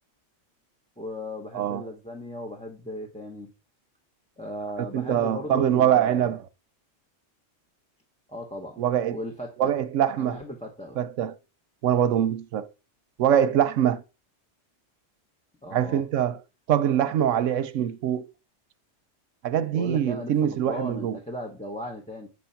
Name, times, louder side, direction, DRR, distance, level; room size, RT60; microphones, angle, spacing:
voice 1, 1.0-3.5 4.4-6.4 8.3-8.8 9.1-9.7 10.2-11.0 15.6-16.0 19.7-22.3, equal, 5° left, 1.1 m, -37 dB
voice 2, 4.9-6.4 8.8-9.2 9.6-10.4 11.0-11.3 11.8-12.7 13.2-14.0 15.7-16.4 16.7-18.3 19.4-21.2, right 10 dB, 85° right, 1.0 m, -23 dB
9.4 x 4.2 x 5.8 m
omnidirectional pair, 1.3 m